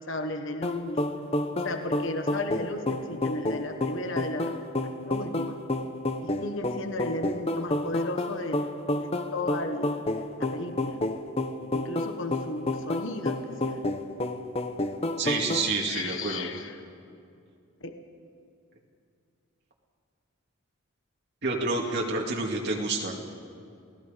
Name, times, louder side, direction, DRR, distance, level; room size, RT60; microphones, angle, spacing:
voice 1, 0.1-1.0 1.5-4.6 5.0-5.6 6.2-8.6 9.0-10.0 10.4-11.0 11.7-13.8 15.8-16.8 17.8-18.0, left 2 dB, 60° left, 6 dB, 1.4 m, -34 dB
sound 1, 0.6-15.7, left 1 dB, 30° left, 1.0 m, -30 dB
voice 2, 15.2-16.5 21.4-23.1, right 3 dB, 55° right, -1 dB, 2.2 m, -28 dB
29.0 x 18.0 x 5.2 m, 2.4 s
head